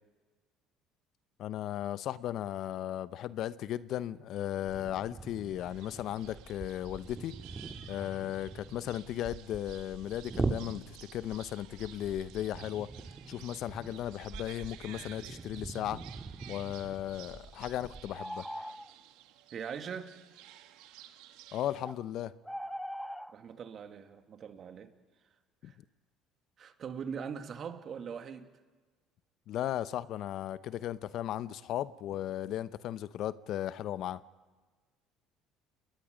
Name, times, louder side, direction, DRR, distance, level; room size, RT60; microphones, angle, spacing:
voice 1, 1.4-7.3 7.9-12.9 13.3-16.0 16.5-18.5 21.5-22.3 25.6-25.7 29.5-34.2, left 12 dB, 60° left, 16 dB, 0.8 m, -36 dB
sound 1, 4.7-18.1, right 3 dB, 25° right, 2.2 m, -42 dB
sound 2, 5.6-21.9, right 12 dB, 75° right, 1.5 m, -54 dB
sound 3, 18.1-19.0 21.8-22.0 22.4-23.3, equal, ahead, 0.7 m, -40 dB
voice 2, 19.5-20.1 23.3-24.9 25.6-25.8 26.6-28.5, right 7 dB, 50° right, 7 dB, 2.2 m, -41 dB
30.0 x 20.5 x 5.2 m, 1.4 s
hypercardioid pair, 70°, 0 cm